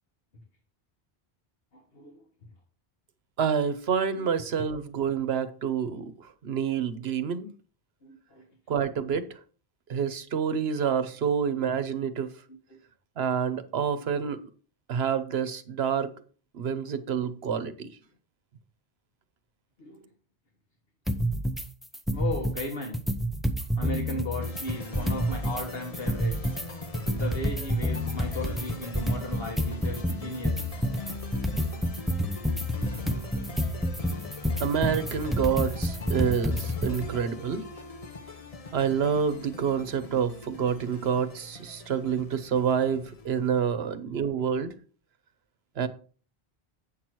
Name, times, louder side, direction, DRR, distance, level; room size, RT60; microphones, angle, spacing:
voice 1, 1.7-2.2 4.1-4.3 8.0-8.4 16.9-17.0 19.8-20.1 22.1-23.0 23.8-26.5 27.1-30.7 42.0-42.1 43.7-43.8, left 1 dB, 65° left, 1.5 m, -36 dB
voice 2, 3.4-7.5 8.7-9.3 9.9-12.3 13.2-14.5 14.9-16.1 16.5-17.9 34.6-37.6 38.7-44.7 45.8-45.9, right 7 dB, 75° right, 1.1 m, -28 dB
sound 1, 21.1-21.7 21.9-22.7 22.9-25.7 25.9-37.1, equal, ahead, 0.5 m, -29 dB
sound 2, 24.4-43.7, left 2 dB, 35° left, 1.0 m, -41 dB
8.5 x 5.9 x 4.6 m
omnidirectional pair, 1.1 m